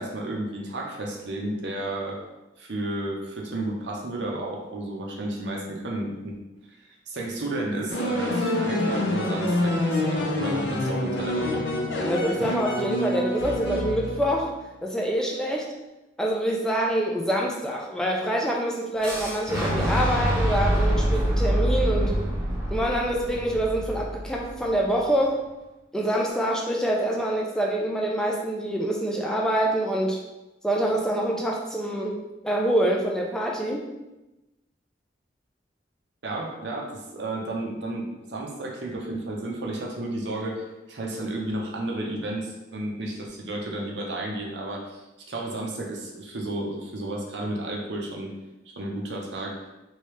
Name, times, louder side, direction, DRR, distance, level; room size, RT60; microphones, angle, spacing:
voice 1, 0.0-2.2 2.6-6.4 7.1-11.6 36.2-48.3 48.7-49.6, right 1 dB, 70° right, 0 dB, 0.7 m, -32 dB
sound 1, 7.9-14.6, left 1 dB, 75° left, 0.6 m, -27 dB
voice 2, 12.0-14.5 14.8-15.7 16.2-22.2 22.7-25.4 25.9-30.2 30.6-33.8, right 1 dB, 5° left, -2 dB, 0.3 m, -26 dB
Boom, 19.0-24.9, equal, 15° right, 0.7 m, -25 dB
3.1 x 2.7 x 3.1 m, 1.0 s
head